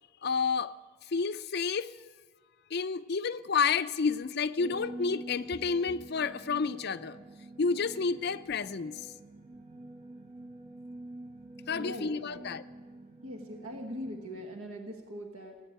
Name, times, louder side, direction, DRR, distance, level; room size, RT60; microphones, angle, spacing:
voice 1, 0.2-0.7 1.1-1.9 2.7-7.2 7.6-9.0 11.7-12.6, left 5 dB, 50° left, 0.5 m, -30 dB
sound 1, 4.6-14.5, right 1 dB, 35° right, 1.3 m, -47 dB
voice 2, 11.7-12.4 13.2-15.6, equal, 90° right, 1.3 m, -41 dB
16.5 x 8.7 x 8.8 m
head